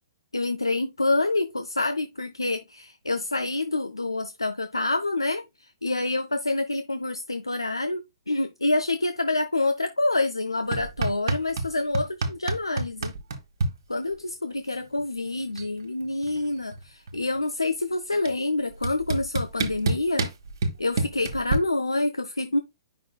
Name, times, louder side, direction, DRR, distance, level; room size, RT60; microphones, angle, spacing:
voice 1, 0.3-5.4 5.8-13.1 13.9-20.3 20.8-22.6, left 2 dB, 85° left, 0.5 m, -27 dB
sound 1, 10.7-11.7 11.9-13.7 15.0-15.1 15.3-15.7 16.0-17.4 18.3-18.4 18.8-21.6, right 3 dB, 55° right, 1.2 m, -27 dB
8.4 x 5.6 x 2.2 m
figure-of-eight pair, 120°, 2 cm